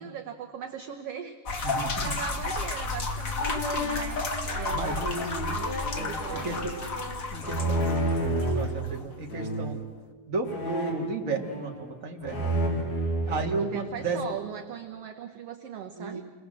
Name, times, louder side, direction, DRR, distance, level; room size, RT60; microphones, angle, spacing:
voice 1, 0.0-5.1 5.5-6.8 13.6-16.2, right 8 dB, 60° right, 5 dB, 1.9 m, -39 dB
sound 1, 1.5-9.0, left 3 dB, 35° left, 1.5 m, -32 dB
voice 2, 1.6-2.1 4.7-5.5 6.0-6.7 7.3-9.8 10.3-12.5 13.3-14.2 16.0-16.2, right 3 dB, 30° right, 1 dB, 2.4 m, -33 dB
sound 2, 3.4-8.7 9.3-9.8 10.5-11.9 12.2-14.2, right 1 dB, 75° left, 6.2 m, -31 dB
28.0 x 21.5 x 7.7 m, 1.4 s
omnidirectional pair, 3.4 m